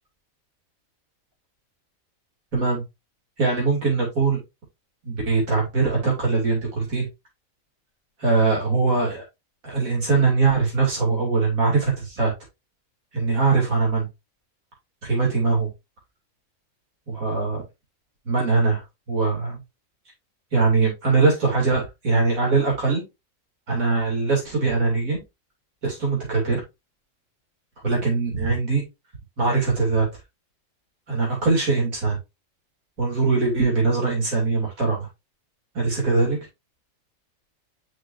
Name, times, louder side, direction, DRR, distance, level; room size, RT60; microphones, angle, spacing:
voice 1, 2.5-2.8 3.4-4.4 5.0-7.1 8.2-9.2 9.6-12.3 13.1-14.1 15.0-15.7 17.1-17.6 18.3-18.8 19.1-19.6 20.5-23.0 23.7-25.2 25.8-26.6 27.8-28.8 29.4-30.1 31.1-32.2 33.0-35.1 35.7-36.4, right 4 dB, 85° right, -2 dB, 3.3 m, -22 dB
6.0 x 6.0 x 2.6 m, 0.22 s
omnidirectional pair, 1.4 m